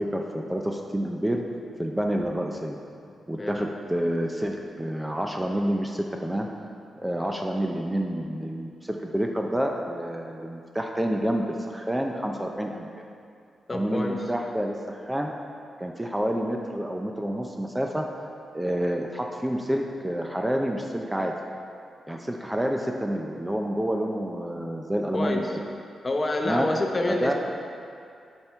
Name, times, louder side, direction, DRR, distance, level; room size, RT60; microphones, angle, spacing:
voice 1, 0.0-1.4 1.8-2.8 3.3-6.5 7.0-13.0 13.7-15.3 15.8-18.1 18.5-21.3 22.1-25.4 26.4-26.7 27.1-27.3, equal, 10° right, 2 dB, 0.5 m, -28 dB
voice 2, 13.7-14.2 25.1-25.6 26.0-27.3, left 2 dB, 30° left, 2 dB, 0.8 m, -27 dB
7.7 x 4.5 x 4.4 m, 2.4 s
cardioid pair, 70°, 0 cm